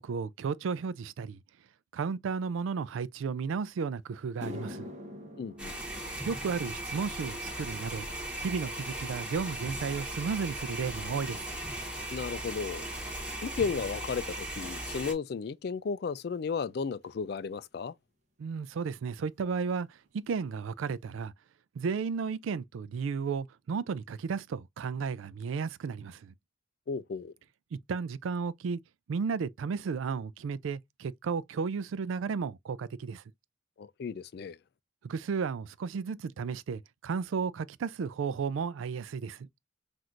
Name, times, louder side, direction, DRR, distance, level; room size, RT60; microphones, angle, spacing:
voice 1, 0.0-1.4 1.9-4.9 6.2-8.1 8.4-11.4 18.4-21.3 21.8-26.3 27.7-28.8 29.1-33.2 35.0-39.5, right 5 dB, 90° right, 0.4 m, -33 dB
sound 1, 3.7-3.8 4.2-12.7 13.0-13.4 14.2-14.3 17.0-17.1 18.8-18.9 19.1-19.3 19.6-20.1 20.5-20.6 21.1-21.2, left 2 dB, 35° right, 0.9 m, -49 dB
voice 2, 5.4-5.8 12.1-12.8 13.4-17.9 26.9-27.3 33.8-34.6, left 5 dB, 55° left, 0.3 m, -34 dB
sound 2, 5.6-15.1, right 1 dB, 5° right, 1.2 m, -38 dB
5.9 x 2.5 x 2.4 m
head